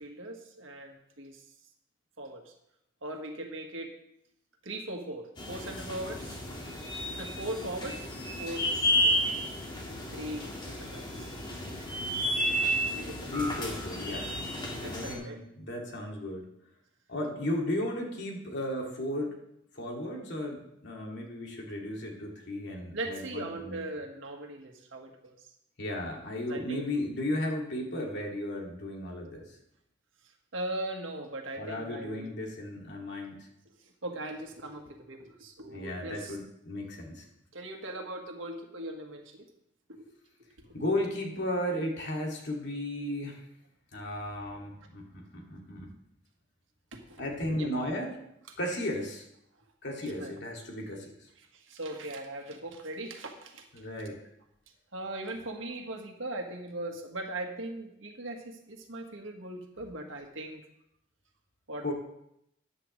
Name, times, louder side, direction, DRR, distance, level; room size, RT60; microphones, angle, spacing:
voice 1, 0.0-1.4 2.2-2.5 3.0-4.0 4.6-6.4 7.2-8.1 8.4-9.4 10.1-11.3 12.9-13.5 14.8-15.4 22.9-25.3 26.4-26.9 30.5-32.3 34.0-36.4 37.5-39.5 39.9-40.1 40.6-40.7 46.9-47.2 47.5-47.7 50.0-50.3 51.5-53.7 54.9-60.6 61.7-61.9, right 1 dB, 70° right, 3 dB, 1.7 m, -39 dB
sound 1, 5.4-15.1, equal, 25° left, 1.9 m, -32 dB
voice 2, 13.3-14.3 14.9-16.5 17.1-19.4 19.7-23.8 25.8-29.5 31.6-33.5 35.7-37.2 40.7-43.4 43.9-45.9 47.2-48.2 48.6-49.2 49.8-51.1 53.7-54.2 61.8-61.9, left 1 dB, 60° left, 0 dB, 2.4 m, -35 dB
14.0 x 9.7 x 3.2 m, 0.78 s
head